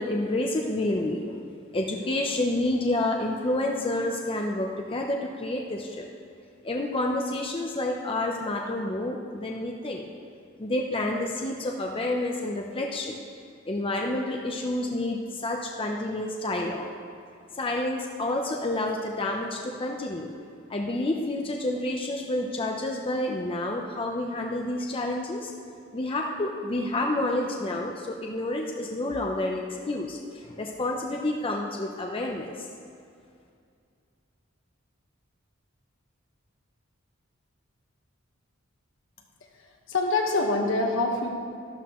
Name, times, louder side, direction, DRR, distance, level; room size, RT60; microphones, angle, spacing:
voice 1, 0.0-1.5 1.7-6.0 6.6-10.1 10.6-13.2 13.7-16.9 17.6-20.3 20.7-25.5 25.9-30.2 30.4-32.5, left 1 dB, 25° left, 0 dB, 0.6 m, -29 dB
voice 2, 39.9-41.3, left 2 dB, 70° left, 1 dB, 1.4 m, -25 dB
12.5 x 12.0 x 3.1 m, 2.3 s
head